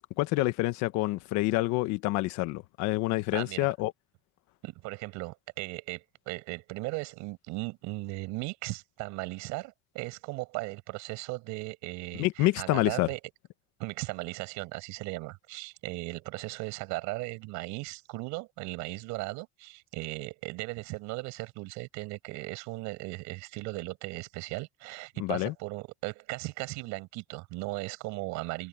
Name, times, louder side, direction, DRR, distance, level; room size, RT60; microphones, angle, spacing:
voice 1, 0.0-3.9 12.2-13.1 25.2-25.5, left 19 dB, 75° left, 1.3 m, -27 dB
voice 2, 3.3-3.7 4.6-13.2 13.8-28.7, right 24 dB, 75° right, 6.0 m, -37 dB
cardioid pair, 155°, 29 cm